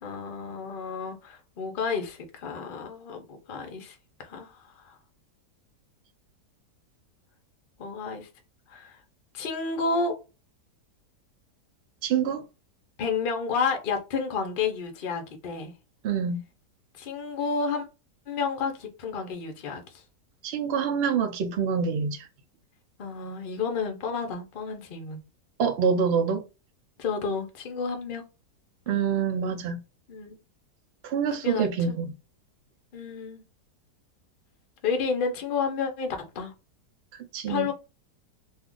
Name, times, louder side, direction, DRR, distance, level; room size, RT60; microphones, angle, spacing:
voice 1, 0.0-5.0 7.8-8.3 8.7-9.0 9.3-10.1 13.0-15.7 17.0-17.9 18.3-19.8 23.0-25.2 27.0-28.2 30.1-30.4 31.4-31.9 32.9-33.4 34.8-36.5 37.5-37.7, left 5 dB, 55° left, 0.6 m, -31 dB
voice 2, 12.0-12.4 16.0-16.4 20.4-22.2 25.6-26.4 28.9-29.8 31.1-32.1 37.3-37.7, right 6 dB, 80° right, 0.5 m, -26 dB
2.7 x 2.4 x 3.6 m
omnidirectional pair, 1.8 m